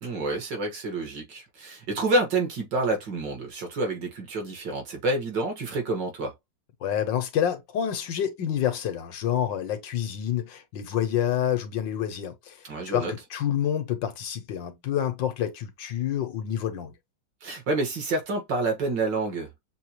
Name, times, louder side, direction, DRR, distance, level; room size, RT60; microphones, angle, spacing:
voice 1, 0.0-6.3 12.6-13.1 17.4-19.5, right 2 dB, 70° right, 2.3 m, -28 dB
voice 2, 6.8-12.6 12.9-16.9, left 10 dB, 80° left, 1.7 m, -28 dB
6.7 x 2.4 x 2.9 m
omnidirectional pair, 2.0 m